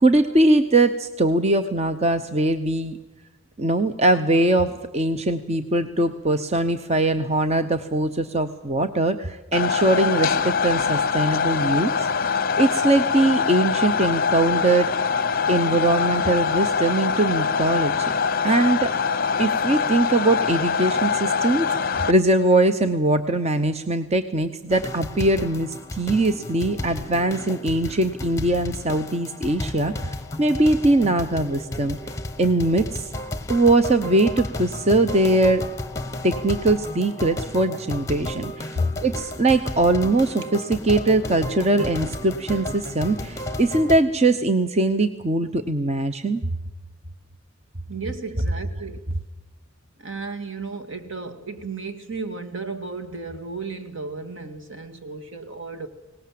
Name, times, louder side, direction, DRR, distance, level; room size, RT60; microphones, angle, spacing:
voice 1, 0.0-3.0 3.6-14.9 15.5-18.1 18.4-18.9 19.4-32.0 32.4-33.1 33.5-35.6 36.2-46.4, right 2 dB, 30° right, 8 dB, 0.8 m, -21 dB
sound 1, 9.5-22.1, left 5 dB, 45° left, 0.7 m, -23 dB
sound 2, 24.7-44.0, left 1 dB, 15° left, 1.3 m, -33 dB
voice 2, 47.9-49.0 50.0-55.9, right 2 dB, 65° right, 7 dB, 2.1 m, -33 dB
23.5 x 19.0 x 7.6 m, 1.0 s
head